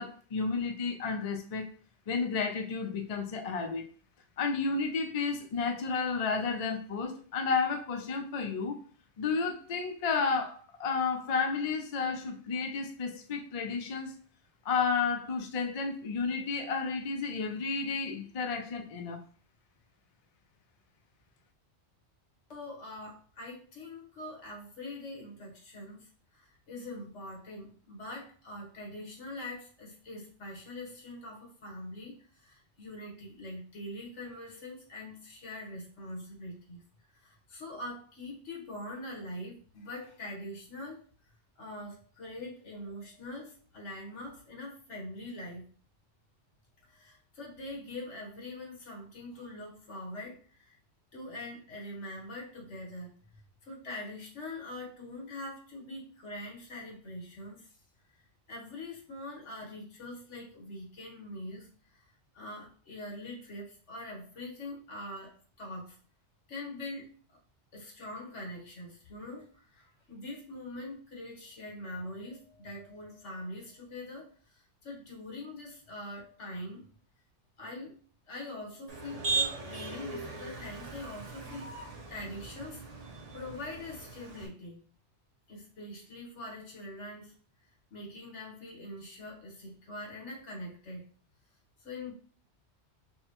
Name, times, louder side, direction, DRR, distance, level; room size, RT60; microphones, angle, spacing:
voice 1, 0.0-1.7 2.1-3.9 4.4-8.8 9.2-14.1 14.6-19.2, left 5 dB, 50° left, 0.4 m, -32 dB
voice 2, 22.5-36.8 37.1-41.0 41.6-45.7 46.9-50.8 51.1-57.7 58.5-62.0 62.3-66.0 66.5-67.4 67.7-76.9 77.6-77.9 78.3-82.8 83.3-84.8 85.5-87.3 87.9-91.1 91.8-92.2, left 1 dB, 80° left, 1.5 m, -43 dB
Motor vehicle (road), 78.9-84.5, right 4 dB, 40° right, 0.6 m, -38 dB
5.5 x 2.1 x 2.9 m
omnidirectional pair, 1.2 m